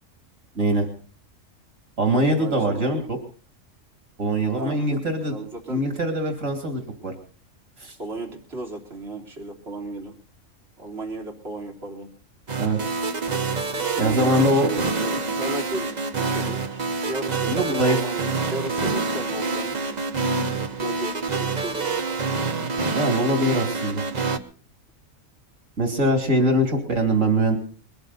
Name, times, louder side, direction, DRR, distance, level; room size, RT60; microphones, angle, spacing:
voice 1, 0.5-0.9 2.0-3.2 4.2-5.3 5.7-7.1 7.8-8.0 12.6-12.8 14.0-14.7 17.5-18.0 22.9-24.0 25.8-27.6, right 1 dB, 80° right, 5 dB, 3.1 m, -22 dB
voice 2, 2.3-3.1 4.6-6.3 8.0-10.1 10.8-12.1 13.7-20.0 20.5-22.1, right 2 dB, 55° right, 0 dB, 3.5 m, -35 dB
sound 1, 12.5-24.4, right 4 dB, 35° right, 1.2 m, -26 dB
22.0 x 14.0 x 4.1 m, 0.41 s
omnidirectional pair, 1.3 m